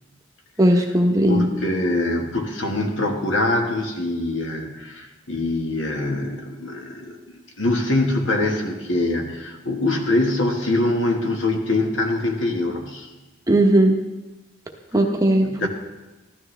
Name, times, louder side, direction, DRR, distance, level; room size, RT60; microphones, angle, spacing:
voice 1, 0.6-1.5 13.5-14.0 14.9-15.7, right 1 dB, 15° right, 2 dB, 0.9 m, -17 dB
voice 2, 1.3-7.2 7.6-13.1 15.4-15.7, left 2 dB, 70° left, 2 dB, 1.6 m, -23 dB
15.0 x 12.5 x 3.4 m, 1.1 s
head